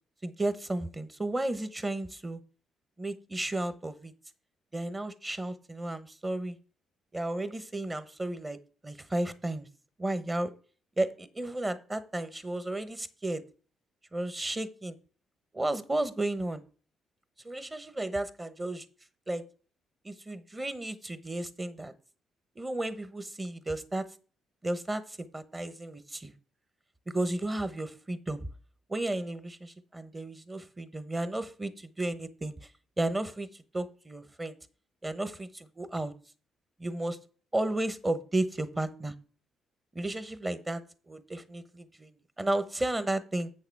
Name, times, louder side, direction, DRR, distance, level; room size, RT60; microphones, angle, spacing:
voice 1, 0.2-2.4 3.0-4.1 4.7-6.6 7.1-8.6 8.8-9.7 10.0-10.5 11.0-13.4 14.1-15.0 15.5-16.6 17.4-18.8 19.3-19.4 20.0-21.9 22.6-24.1 24.6-26.3 27.1-28.5 28.9-32.5 33.0-33.5 33.7-34.5 35.0-36.1 36.8-37.2 37.5-39.1 39.9-42.1 42.4-43.5, right 2 dB, 20° right, 13 dB, 1.0 m, -33 dB
8.1 x 6.5 x 4.7 m, 0.39 s
cardioid pair, 90°, 0 cm